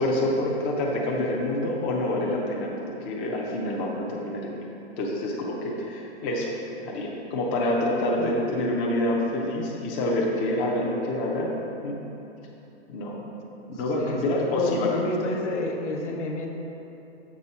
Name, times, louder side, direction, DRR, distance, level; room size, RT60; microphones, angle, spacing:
voice 1, 0.0-4.5 5.0-6.6 6.8-11.5 11.8-12.0 12.9-13.2 13.7-14.9, left 1 dB, 20° left, -3 dB, 0.5 m, -27 dB
voice 2, 13.9-16.5, left 2 dB, 90° left, 1 dB, 1.0 m, -29 dB
7.5 x 3.5 x 5.5 m, 3.0 s
hypercardioid pair, 150°, 35 cm